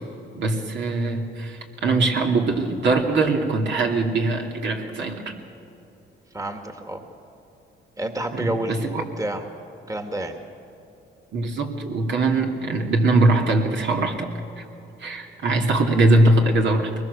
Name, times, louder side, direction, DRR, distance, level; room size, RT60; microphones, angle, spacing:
voice 1, 0.3-5.3 8.3-9.0 11.3-14.3 14.6-14.7 15.0-16.9, right 2 dB, 65° right, 1 dB, 2.8 m, -21 dB
voice 2, 6.3-7.0 8.0-9.4 9.9-10.3, right 1 dB, 15° right, 5 dB, 2.0 m, -29 dB
23.0 x 20.5 x 6.9 m, 3.0 s
cardioid pair, 90°, 20 cm